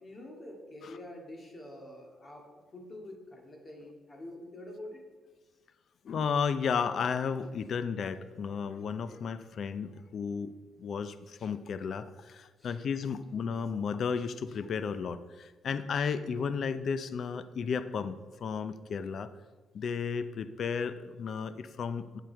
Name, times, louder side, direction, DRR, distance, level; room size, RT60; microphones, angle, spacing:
voice 1, 0.0-5.1 12.6-12.8, left 1 dB, 30° left, 1 dB, 2.1 m, -46 dB
voice 2, 6.0-10.5 10.8-19.3 19.7-22.2, left 6 dB, 55° left, 12 dB, 0.5 m, -33 dB
8.3 x 7.7 x 4.6 m, 1.2 s
cardioid pair, 120°, 0 cm